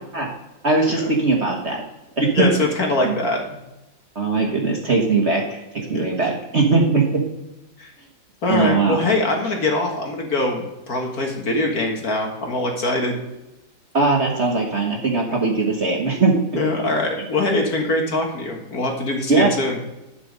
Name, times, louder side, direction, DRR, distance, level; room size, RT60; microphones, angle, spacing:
voice 1, 0.6-1.8 2.2-2.5 3.0-3.2 4.1-7.2 8.5-9.0 13.9-16.3 19.3-19.5, right 3 dB, 40° right, 0 dB, 1.3 m, -20 dB
voice 2, 2.3-3.4 5.9-6.3 7.8-7.9 8.4-13.2 16.5-19.8, left 2 dB, 50° left, 1 dB, 2.0 m, -23 dB
11.5 x 5.0 x 5.3 m, 0.98 s
omnidirectional pair, 2.1 m